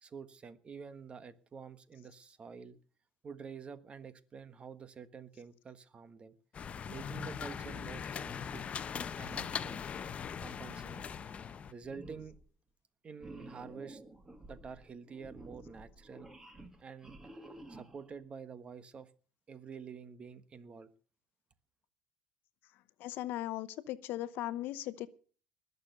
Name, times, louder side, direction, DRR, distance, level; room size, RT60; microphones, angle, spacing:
voice 1, 0.0-2.8 3.2-6.4 6.9-8.6 9.2-9.9 10.4-11.1 11.7-12.4 13.0-14.0 14.5-16.3 16.8-17.2 17.7-19.1 19.5-20.9, right 6 dB, 30° right, 1.3 m, -48 dB
sound 1, 6.5-11.7, left 7 dB, 35° left, 0.8 m, -40 dB
sound 2, 11.2-11.5 11.8-12.4 13.2-18.2, right 1 dB, 15° right, 2.2 m, -52 dB
voice 2, 23.0-25.1, left 14 dB, 65° left, 0.9 m, -38 dB
20.0 x 6.8 x 6.8 m
cardioid pair, 110°, 4 cm